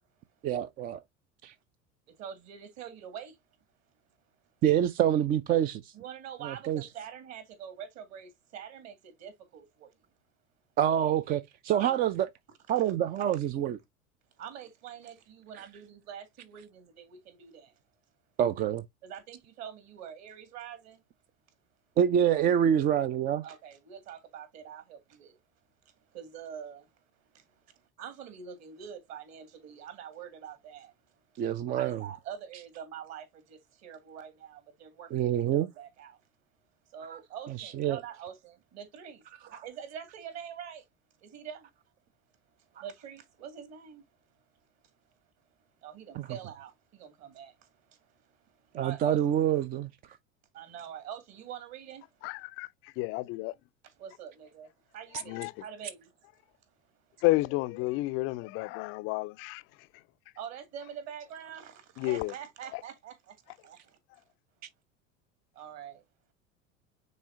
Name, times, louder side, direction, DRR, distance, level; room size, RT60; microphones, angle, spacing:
voice 1, 0.4-1.0 1.4-1.5 4.6-5.9 6.4-6.9 10.8-12.3 12.7-13.8 18.4-18.8 22.0-23.4 31.4-32.0 35.1-35.7 37.0-37.2 37.6-38.0 46.1-46.3 48.7-49.9, right 10 dB, 25° right, 0.4 m, -26 dB
voice 2, 2.2-3.3 5.9-8.9 9.2-9.7 11.7-12.0 14.4-17.5 19.0-21.0 23.4-25.3 26.1-26.8 28.0-30.9 31.7-33.2 33.5-35.1 35.5-36.2 36.9-39.2 39.5-40.8 41.2-41.6 42.8-44.0 45.8-46.7 47.0-47.5 48.8-49.2 50.5-52.0 54.0-54.7 54.9-56.1 60.4-63.1 63.6-63.8 65.6-66.0, right 8 dB, 45° right, 2.3 m, -44 dB
voice 3, 52.2-53.5 55.3-55.5 57.2-59.6 62.0-62.3 62.7-62.8, left 20 dB, 35° left, 0.4 m, -31 dB
9.2 x 4.2 x 2.7 m
figure-of-eight pair, 75°, 39 cm